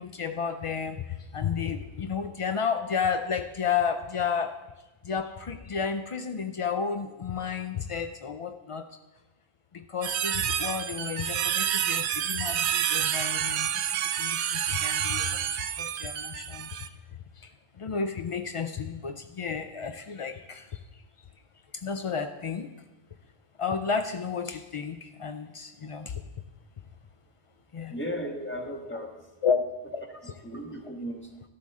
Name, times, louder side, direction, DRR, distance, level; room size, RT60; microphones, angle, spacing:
voice 1, 0.0-4.6 5.0-9.0 9.7-21.3 21.7-22.7 23.6-26.2 27.7-27.9 29.4-29.7 29.9-30.3, left 6 dB, 60° left, 7 dB, 0.3 m, -32 dB
sound 1, 10.0-16.9, right 10 dB, 80° right, 0.8 m, -29 dB
voice 2, 27.9-29.1 30.4-31.3, equal, 10° left, 1 dB, 1.4 m, -35 dB
12.5 x 12.0 x 3.6 m, 1.1 s
omnidirectional pair, 1.1 m